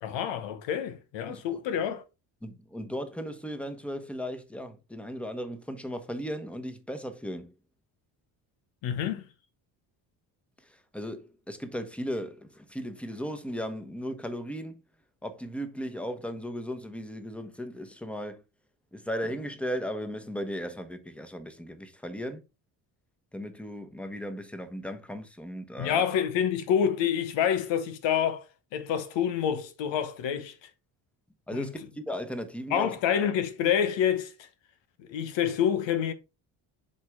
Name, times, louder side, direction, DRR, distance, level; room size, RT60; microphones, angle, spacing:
voice 1, 0.0-2.0 8.8-9.2 25.8-28.5 28.7-30.7 31.5-31.7 32.7-34.5 35.0-36.1, left 8 dB, 75° left, 1.1 m, -27 dB
voice 2, 1.3-1.6 2.4-7.5 10.7-14.8 15.2-18.4 18.9-22.4 23.3-26.0 31.5-33.0, equal, 5° left, 1.1 m, -36 dB
8.0 x 3.3 x 3.6 m
supercardioid pair, 65°, 45 cm